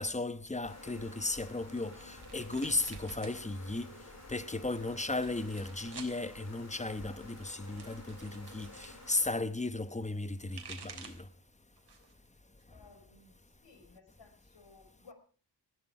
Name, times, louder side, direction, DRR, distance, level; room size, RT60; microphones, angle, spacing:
voice 1, 0.0-3.9 4.3-11.1, left 2 dB, 15° left, 1.0 m, -35 dB
sound 1, 0.6-9.3, left 2 dB, 40° left, 5.7 m, -51 dB
sound 2, 1.7-3.4 3.7-4.3 5.0-6.2 7.2-8.9 10.2-11.3 11.8-12.2 12.6-13.6, right 5 dB, 65° right, 3.6 m, -51 dB
voice 2, 12.7-15.1, left 4 dB, 80° left, 4.8 m, -59 dB
20.0 x 14.5 x 4.9 m
wide cardioid pair, 125°, 42 cm